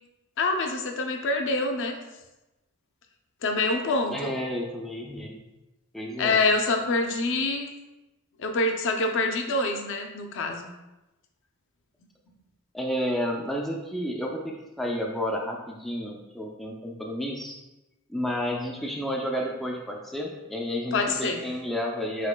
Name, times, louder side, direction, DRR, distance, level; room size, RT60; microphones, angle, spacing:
voice 1, 0.4-2.0 3.4-4.4 6.2-7.7 8.4-10.7 20.9-21.4, left 3 dB, 55° left, 4 dB, 0.5 m, -26 dB
voice 2, 4.1-5.4 5.9-6.4 12.7-17.6 18.1-22.3, equal, ahead, -1 dB, 0.3 m, -31 dB
5.0 x 4.1 x 2.2 m, 1.0 s
head